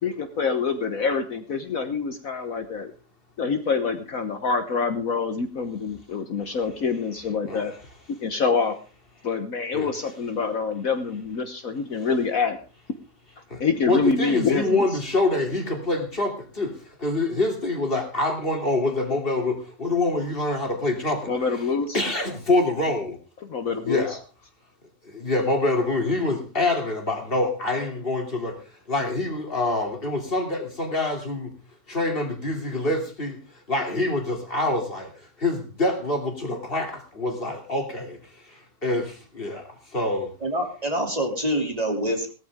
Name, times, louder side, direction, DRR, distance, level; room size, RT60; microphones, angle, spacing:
voice 1, 0.0-2.9 3.4-7.7 8.2-8.8 9.2-12.6 13.6-14.9 21.3-22.0 23.4-24.2, left 5 dB, 60° left, 7 dB, 1.5 m, -26 dB
voice 2, 13.5-21.3 21.9-23.2 23.6-24.2 25.0-28.6 28.9-31.5 31.9-33.4 33.7-35.1 35.4-38.2 38.5-40.3, left 2 dB, 35° left, 3 dB, 3.1 m, -26 dB
voice 3, 40.4-42.3, right 1 dB, 25° right, 2 dB, 2.9 m, -26 dB
17.5 x 13.5 x 3.6 m, 0.34 s
omnidirectional pair, 1.7 m